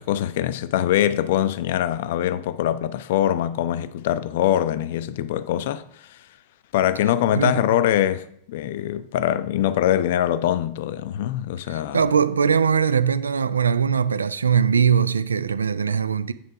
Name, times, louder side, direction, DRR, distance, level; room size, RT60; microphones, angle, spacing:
voice 1, 0.0-6.2 6.7-12.0, left 11 dB, 55° left, 0.4 m, -23 dB
voice 2, 11.7-16.3, right 7 dB, 75° right, 0.4 m, -21 dB
8.5 x 3.7 x 5.8 m
figure-of-eight pair, 90°, 0 cm